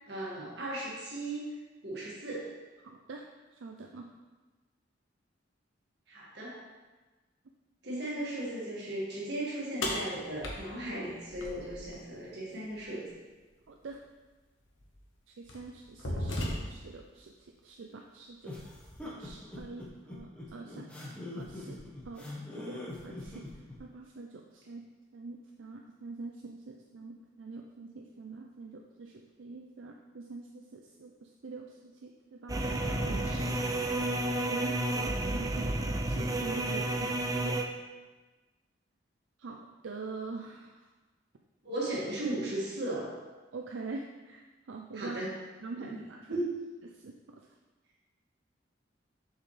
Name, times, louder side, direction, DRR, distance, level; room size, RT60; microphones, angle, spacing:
voice 1, 0.1-1.6 1.8-2.6 6.1-6.6 7.8-13.1 41.6-43.1 44.9-45.3 45.8-46.0 46.3-46.5, right 1 dB, 55° right, -5 dB, 1.9 m, -36 dB
voice 2, 2.8-3.3 3.5-4.1 7.9-8.0 13.7-14.0 15.3-18.5 19.0-21.8 22.1-22.3 22.6-24.8 25.1-33.7 34.5-37.7 39.4-40.9 43.5-45.2 45.6-46.4 46.9-47.4, right 3 dB, 80° right, 1 dB, 0.5 m, -45 dB
sound 1, 9.8-12.0 13.9-14.0 14.8-15.0 15.5-17.0, left 1 dB, 85° left, 1.1 m, -35 dB
sound 2, 18.4-23.8, left 2 dB, 5° left, 1.2 m, -43 dB
sound 3, 32.5-37.6, right 1 dB, 20° right, 0.4 m, -31 dB
7.0 x 5.6 x 3.3 m, 1.2 s
head